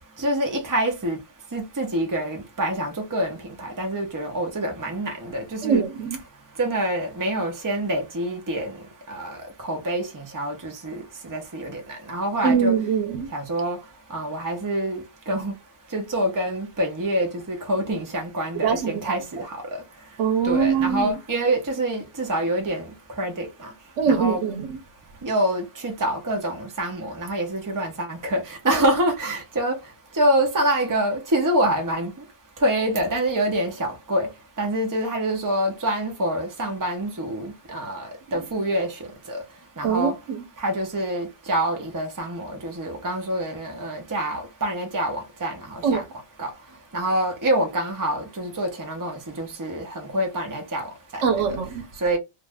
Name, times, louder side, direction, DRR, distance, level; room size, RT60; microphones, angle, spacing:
voice 1, 0.2-1.2 1.5-5.8 6.6-8.8 9.1-9.4 9.6-11.8 12.1-12.8 13.3-13.8 14.1-15.5 15.9-19.5 20.4-22.9 23.2-23.5 24.1-24.4 25.2-29.8 30.2-32.1 32.6-34.3 34.6-38.0 38.3-38.9 39.3-39.4 39.8-40.1 40.6-46.0 46.4-46.5 46.9-50.9 51.1-51.2 52.0-52.2, right 1 dB, 20° right, 0.7 m, -26 dB
voice 2, 5.6-6.2 12.4-13.3 18.6-19.2 20.2-21.1 24.0-24.7 39.8-40.4 45.8-46.0 51.2-51.8, right 6 dB, 80° right, 1.1 m, -22 dB
2.6 x 2.4 x 3.2 m
omnidirectional pair, 1.2 m